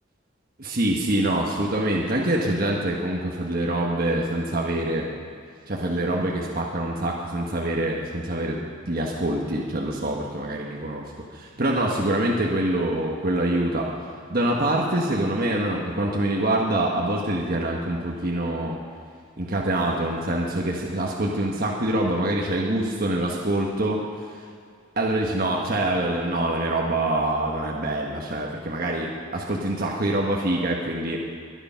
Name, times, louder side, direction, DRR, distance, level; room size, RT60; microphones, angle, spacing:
voice 1, 0.6-5.1 5.7-13.9 14.3-18.8 19.4-24.0 25.0-31.4, right 1 dB, 50° right, -2 dB, 1.5 m, -25 dB
22.5 x 10.0 x 5.8 m, 2.2 s
head